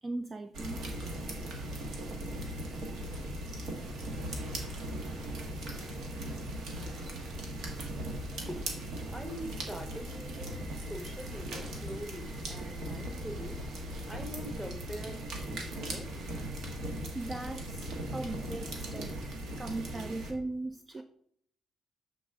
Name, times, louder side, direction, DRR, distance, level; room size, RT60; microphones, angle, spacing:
voice 1, 0.0-1.0 17.1-19.1 19.6-21.0, right 2 dB, 25° right, 9 dB, 0.3 m, -38 dB
sound 1, 0.5-20.3, right 1 dB, 80° right, 1.3 m, -38 dB
voice 2, 8.4-17.2 19.5-20.2 21.0-21.1, equal, 5° right, 6 dB, 1.0 m, -45 dB
7.1 x 4.1 x 3.5 m, 0.67 s
cardioid pair, 90°, 0 cm